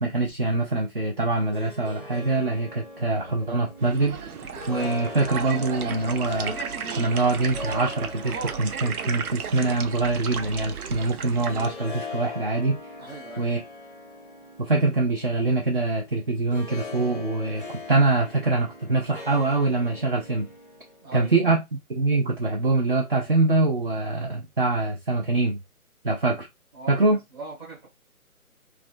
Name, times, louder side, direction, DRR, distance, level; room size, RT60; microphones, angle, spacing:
voice 1, 0.0-4.2 4.7-6.5 6.9-12.8 13.4-13.6 14.6-20.5 21.1-21.6 21.9-25.6 26.0-26.5 26.9-27.2, right 3 dB, 40° right, 0.4 m, -24 dB
Harp, 1.3-21.1, left 3 dB, 40° left, 0.5 m, -41 dB
sound 1, 3.8-11.6, right 6 dB, 85° right, 0.6 m, -34 dB
voice 2, 13.0-13.5 21.0-21.6 26.7-27.9, right 3 dB, 15° right, 0.9 m, -40 dB
2.4 x 2.1 x 2.4 m
figure-of-eight pair, 150°, 43 cm